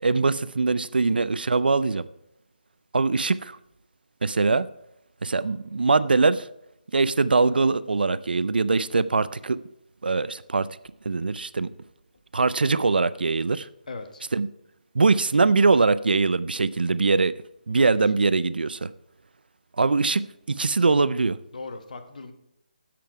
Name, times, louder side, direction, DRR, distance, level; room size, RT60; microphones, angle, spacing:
voice 1, 0.0-2.1 2.9-3.6 4.2-4.7 5.2-6.5 6.9-9.6 10.0-10.7 11.1-11.7 12.3-13.7 14.3-14.5 14.9-17.3 17.7-18.9 19.8-21.4, right 4 dB, 85° right, 0.5 m, -22 dB
voice 2, 13.9-14.2 17.8-18.0 21.5-22.3, left 3 dB, 55° left, 1.2 m, -38 dB
10.5 x 7.8 x 4.7 m
hypercardioid pair, 170°, 5 cm